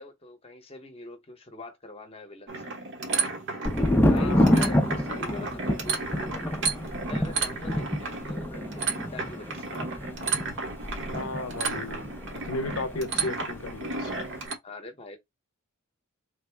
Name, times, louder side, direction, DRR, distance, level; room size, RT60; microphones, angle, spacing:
voice 1, 0.0-2.7 4.1-10.0 14.6-15.2, left 2 dB, 30° left, 0.8 m, -43 dB
sound 1, 2.5-14.5, right 4 dB, 60° right, 1.0 m, -33 dB
Thunder, 3.6-13.3 13.5-14.3, equal, 10° left, 0.4 m, -28 dB
voice 2, 4.1-4.7 11.1-14.3, left 3 dB, 75° left, 0.6 m, -35 dB
3.5 x 2.0 x 3.3 m
head